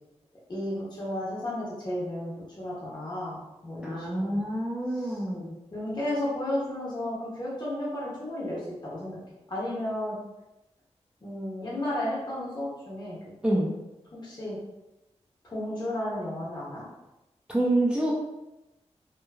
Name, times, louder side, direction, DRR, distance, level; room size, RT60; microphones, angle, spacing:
voice 1, 0.5-4.4 4.9-5.2 5.7-9.2 9.5-10.2 11.2-13.2 14.1-14.6 15.4-16.8, left 1 dB, 40° left, -6 dB, 1.1 m, -33 dB
voice 2, 3.8-5.5 13.4-13.7 17.5-18.1, right 1 dB, 10° right, -4 dB, 0.4 m, -27 dB
3.0 x 2.2 x 2.2 m, 0.98 s
wide cardioid pair, 75°, 12 cm